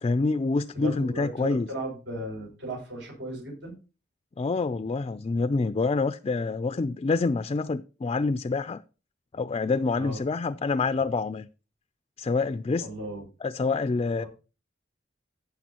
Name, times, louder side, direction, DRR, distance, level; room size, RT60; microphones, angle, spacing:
voice 1, 0.0-1.7 4.4-8.8 9.3-11.5 12.2-12.9 13.4-14.2, left 3 dB, 30° left, 0.3 m, -27 dB
voice 2, 0.7-3.7 10.0-10.2 12.8-13.2 14.2-14.3, right 1 dB, 85° right, 6.5 m, -36 dB
15.0 x 6.8 x 2.9 m
head